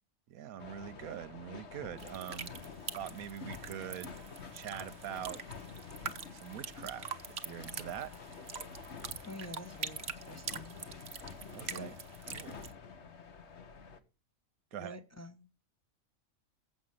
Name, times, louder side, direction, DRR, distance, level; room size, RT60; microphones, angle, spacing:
voice 1, 0.3-2.5 2.9-4.2 4.5-5.6 6.3-8.1 11.5-11.9 12.3-12.6 14.7-15.0, right 10 dB, 90° right, 1.3 m, -43 dB
sound 1, 0.6-14.0, left 5 dB, 55° left, 1.4 m, -48 dB
sound 2, 2.0-12.7, right 6 dB, 50° right, 1.2 m, -45 dB
voice 2, 9.2-10.8 11.7-12.0 14.7-15.5, left 2 dB, 15° left, 0.8 m, -47 dB
15.5 x 6.4 x 5.6 m
omnidirectional pair, 1.5 m